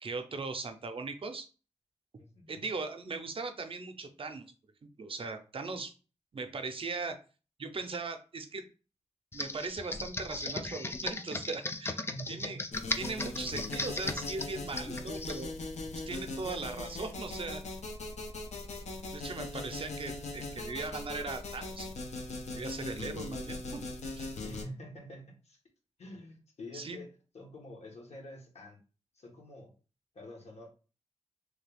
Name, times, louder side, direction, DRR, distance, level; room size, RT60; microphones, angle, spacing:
voice 1, 0.0-1.5 2.5-4.5 5.0-5.9 6.3-7.2 7.6-8.6 9.3-12.0 12.3-12.6 13.0-15.5 15.9-17.6 19.1-22.0 22.5-23.8 24.2-24.3 26.7-27.0, right 3 dB, 50° right, 7 dB, 0.5 m, -39 dB
voice 2, 2.2-2.6 5.7-5.8 12.1-12.6 15.8-15.9 24.4-25.6 26.0-28.8 29.1-29.7 30.1-30.7, left 1 dB, 70° left, 0 dB, 1.0 m, -47 dB
Computer keyboard, 9.3-15.4, left 2 dB, 20° left, 0.3 m, -37 dB
sound 1, 12.7-24.6, left 2 dB, 90° left, 0.6 m, -40 dB
3.2 x 2.3 x 3.3 m, 0.34 s
wide cardioid pair, 110°, 11 cm